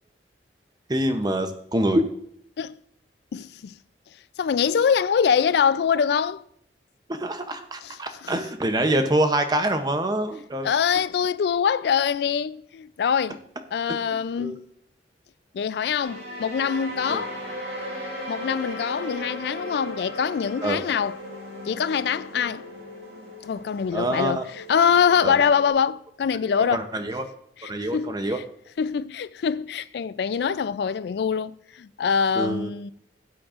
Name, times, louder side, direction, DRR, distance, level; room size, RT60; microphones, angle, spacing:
voice 1, 0.9-2.0 7.1-10.7 13.9-14.6 17.1-17.3 20.6-20.9 23.9-24.4 25.2-25.4 26.7-27.3 27.7-28.4 32.4-32.7, right 1 dB, 20° right, 0.6 m, -25 dB
voice 2, 3.3-3.8 4.4-6.4 7.8-8.0 8.2-8.3 10.6-13.4 13.7-14.6 15.5-17.4 18.3-21.2 21.7-22.6 23.4-24.4 24.7-26.8 27.9-28.1 28.8-32.9, left 7 dB, 60° left, 0.3 m, -24 dB
sound 1, 16.0-25.7, equal, 80° right, 4.5 m, -37 dB
15.5 x 8.7 x 2.5 m
head